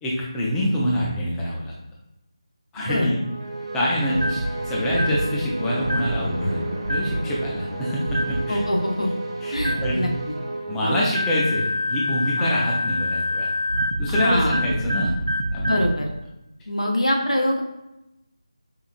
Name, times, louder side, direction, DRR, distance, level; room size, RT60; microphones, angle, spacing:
voice 1, 0.0-1.7 2.7-3.2 3.7-6.6 6.9-8.6 9.4-10.1 10.7-13.5 14.0-15.1 15.5-15.8, equal, 5° left, -5 dB, 0.4 m, -25 dB
voice 2, 2.8-3.1 8.5-9.1 9.5-10.4 10.8-11.0 12.4-12.5 14.1-14.6 15.6-16.1 16.7-17.6, left 1 dB, 85° left, 1 dB, 0.8 m, -24 dB
sound 1, 3.1-11.6, right 2 dB, 45° right, 0.7 m, -32 dB
sound 2, 4.1-4.5 4.9-5.3 5.8-6.2 6.8-7.2 8.1-8.4 9.6-9.9 11.1-15.9, left 1 dB, 80° right, 0.5 m, -25 dB
4.9 x 2.4 x 2.5 m, 0.91 s
figure-of-eight pair, 160°, 3 cm